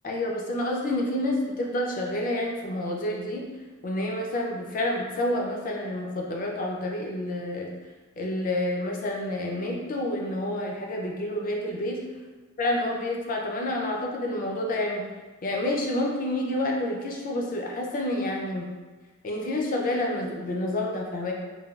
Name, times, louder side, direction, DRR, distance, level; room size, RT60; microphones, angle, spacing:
voice 1, 0.0-3.4 3.8-7.7 8.2-12.0 12.6-15.0 15.4-18.7 19.2-21.3, left 1 dB, 40° left, 0 dB, 0.4 m, -29 dB
3.1 x 2.2 x 2.3 m, 1.3 s
head